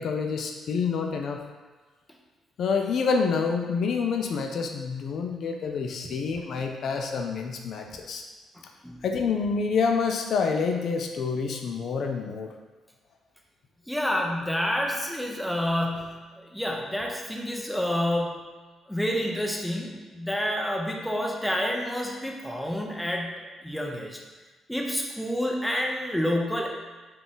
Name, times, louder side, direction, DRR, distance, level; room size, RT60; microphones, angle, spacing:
voice 1, 0.0-1.4 2.6-8.2 9.0-12.5, left 5 dB, 65° left, 4 dB, 0.3 m, -27 dB
voice 2, 13.9-18.5 18.9-24.1 24.7-26.7, equal, 5° left, 0 dB, 0.6 m, -29 dB
3.8 x 2.4 x 3.8 m, 1.3 s
cardioid pair, 90°, 0 cm